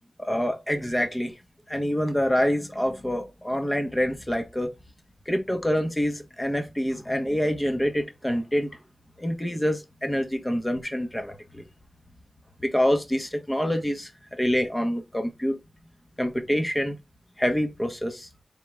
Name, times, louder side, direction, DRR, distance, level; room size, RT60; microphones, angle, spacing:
voice 1, 0.2-1.4 1.7-4.7 5.2-8.8 9.2-11.6 12.6-15.6 16.2-17.0 17.4-18.3, equal, 15° left, 1.2 m, -26 dB
3.9 x 3.7 x 3.4 m
cardioid pair, 55°, 0 cm